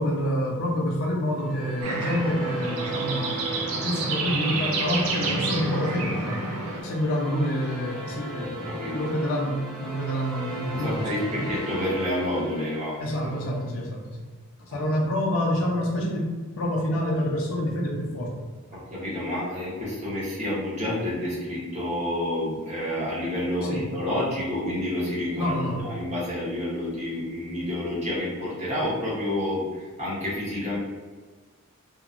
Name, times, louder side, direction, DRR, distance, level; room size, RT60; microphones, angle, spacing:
voice 1, 0.0-6.5 6.8-11.4 13.0-14.3 14.6-16.3 16.5-18.5 23.6-23.9 25.4-25.8, equal, 70° left, -2 dB, 0.5 m, -27 dB
sound 1, 1.3-13.7, right 1 dB, ahead, 0.5 m, -36 dB
sound 2, 1.8-6.8, right 3 dB, 75° right, 0.4 m, -30 dB
voice 2, 8.7-9.1 10.7-13.3 18.7-25.5 25.8-30.8, left 1 dB, 30° right, -8 dB, 1.0 m, -29 dB
2.8 x 2.2 x 2.5 m, 1.4 s
head